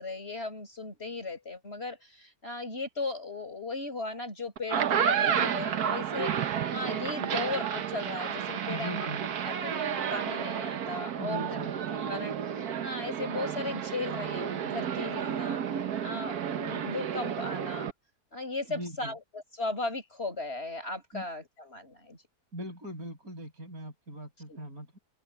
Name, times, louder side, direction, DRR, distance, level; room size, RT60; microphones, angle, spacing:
voice 1, 0.0-9.1 9.4-11.7 12.1-15.6 16.0-17.9 18.3-22.2 24.5-24.6, left 3 dB, 40° left, 6.9 m, -37 dB
sound 1, 4.6-17.9, right 8 dB, 85° right, 1.6 m, -31 dB
voice 2, 8.7-9.2 11.2-11.7 18.7-19.1 21.1-21.3 22.5-25.0, equal, 70° right, 7.6 m, -40 dB
open air
omnidirectional pair, 1.6 m